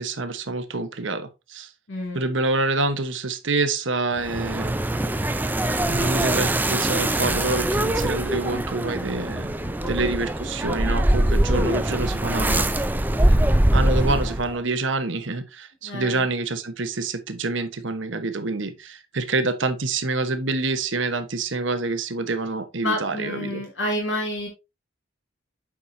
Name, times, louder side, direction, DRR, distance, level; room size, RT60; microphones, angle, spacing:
voice 1, 0.0-1.7 2.1-4.7 5.9-9.5 9.9-12.7 13.7-23.6, right 3 dB, 70° right, 1.1 m, -27 dB
voice 2, 1.9-2.2 9.6-9.9 11.5-11.8 15.8-16.3 22.8-24.5, left 1 dB, 70° left, 2.5 m, -29 dB
sound 1, 4.2-14.6, right 1 dB, 10° right, 0.4 m, -23 dB
8.7 x 6.0 x 2.7 m
head